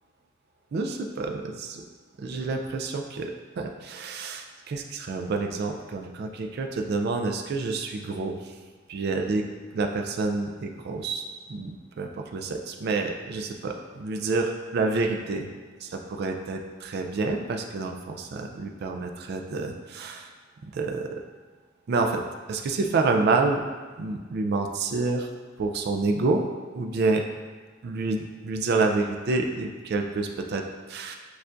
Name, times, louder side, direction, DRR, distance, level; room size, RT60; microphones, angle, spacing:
voice 1, 0.7-1.8 2.2-8.6 8.9-9.4 9.7-15.5 15.8-20.3 20.7-21.2 21.9-22.2 22.5-23.6 24.0-25.3 25.6-26.4 26.7-27.2 27.8-31.2, right 3 dB, 55° right, 4 dB, 0.3 m, -28 dB
6.6 x 2.4 x 2.5 m, 1.4 s
head